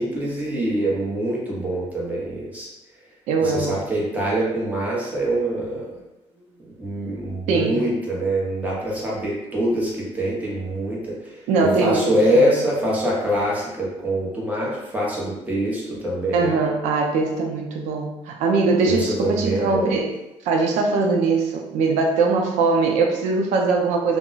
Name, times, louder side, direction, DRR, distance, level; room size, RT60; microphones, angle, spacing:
voice 1, 0.0-2.7 3.4-6.0 6.6-16.6 18.8-20.0, right 1 dB, 15° right, -5 dB, 0.8 m, -24 dB
voice 2, 3.3-3.8 7.5-7.9 11.5-12.4 16.3-20.1 20.4-24.2, right 4 dB, 90° right, 2 dB, 0.4 m, -21 dB
2.3 x 2.0 x 3.8 m, 0.95 s
cardioid pair, 135°, 12 cm